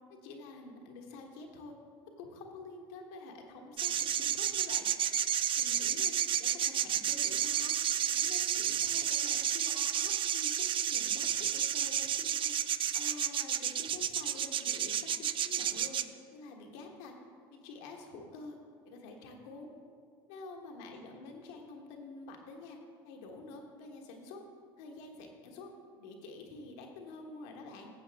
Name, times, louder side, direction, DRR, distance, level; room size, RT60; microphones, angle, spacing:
voice 1, 0.1-1.7 2.2-4.9 5.6-7.8 8.1-12.6 12.9-16.0 16.3-17.1 17.5-18.6 18.9-19.7 20.3-22.8 23.0-24.4 24.8-25.7 26.0-27.9, left 3 dB, 75° left, 2 dB, 1.3 m, -48 dB
sound 1, 3.8-16.0, right 9 dB, 40° right, 0.4 m, -31 dB
13.0 x 7.5 x 3.5 m, 2.2 s
hypercardioid pair, 75°, 13 cm